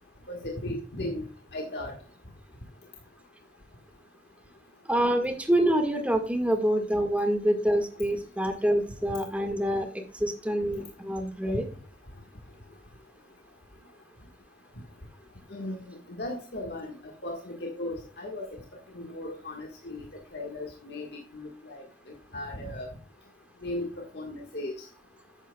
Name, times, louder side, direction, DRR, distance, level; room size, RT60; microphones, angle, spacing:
voice 1, 0.3-1.3 1.5-1.9 15.5-16.9 17.2-18.5 18.9-20.0 20.3-21.8 22.3-22.9 23.6-23.9 24.1-24.7, left 1 dB, 70° left, 1 dB, 1.6 m, -36 dB
voice 2, 4.9-9.9 10.2-11.6, right 1 dB, 10° right, 4 dB, 1.7 m, -26 dB
11.5 x 9.0 x 2.3 m, 0.39 s
head